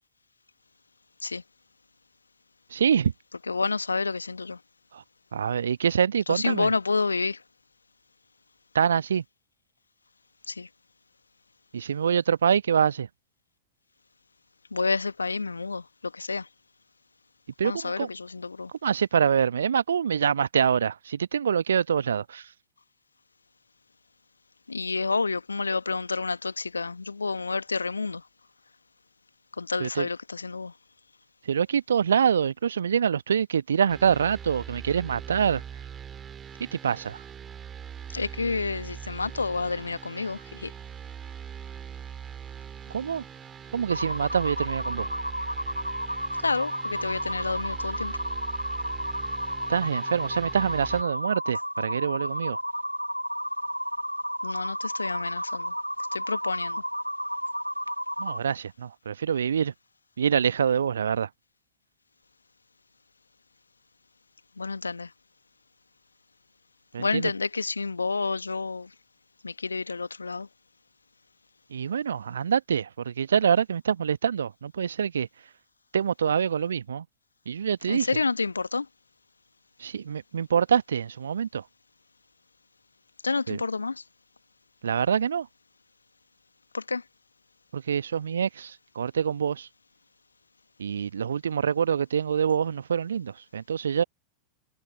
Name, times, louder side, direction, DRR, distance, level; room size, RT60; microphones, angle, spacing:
voice 1, 2.7-3.1 4.9-5.0 5.3-6.7 8.7-9.2 11.7-13.1 17.6-18.1 18.8-22.5 29.8-30.1 31.4-35.6 36.7-37.2 42.9-43.2 43.7-45.1 49.7-52.6 58.2-59.7 60.2-61.3 66.9-67.3 71.7-75.3 75.9-77.0 77.5-78.1 79.8-81.6 83.5-83.6 84.8-85.5 87.7-89.7 90.8-94.0, right 7 dB, 70° right, 1.1 m, -25 dB
voice 2, 3.5-4.6 6.3-7.4 10.5-10.7 14.7-16.5 17.6-18.7 24.7-28.3 29.6-30.7 38.1-40.7 46.4-48.2 54.4-55.7 56.1-56.8 64.6-65.1 67.0-68.9 69.4-70.5 77.9-78.9 83.2-84.0 86.7-87.0, left 4 dB, 80° left, 1.4 m, -29 dB
sound 1, 33.9-51.0, right 8 dB, 25° right, 3.2 m, -42 dB
sound 2, 43.9-58.4, equal, 90° right, 0.9 m, -32 dB
figure-of-eight pair, 90°, 0 cm